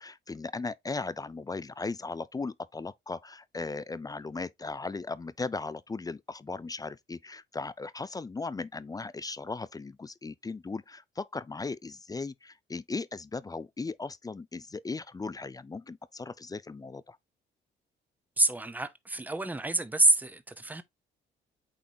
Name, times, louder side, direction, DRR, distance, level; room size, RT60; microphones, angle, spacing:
voice 1, 0.0-17.2, left 3 dB, 20° left, 0.4 m, -37 dB
voice 2, 18.4-20.8, right 2 dB, 10° right, 0.8 m, -27 dB
8.6 x 3.9 x 2.8 m
cardioid pair, 90°, 20 cm